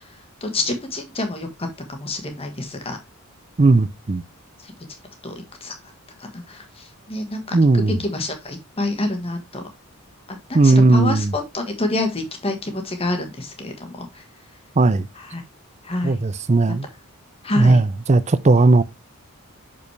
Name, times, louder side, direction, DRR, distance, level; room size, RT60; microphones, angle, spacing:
voice 1, 0.4-3.0 5.2-5.3 5.6-5.7 6.3-6.6 7.1-7.6 8.0-9.6 10.3-14.1 15.3-15.4 15.9-16.2 17.4-17.8, left 2 dB, 25° left, 1.5 m, -27 dB
voice 2, 3.6-4.2 7.5-8.0 10.5-11.3 14.8-15.0 16.0-16.9 17.6-18.8, right 3 dB, 30° right, 0.5 m, -16 dB
6.5 x 5.4 x 3.3 m
head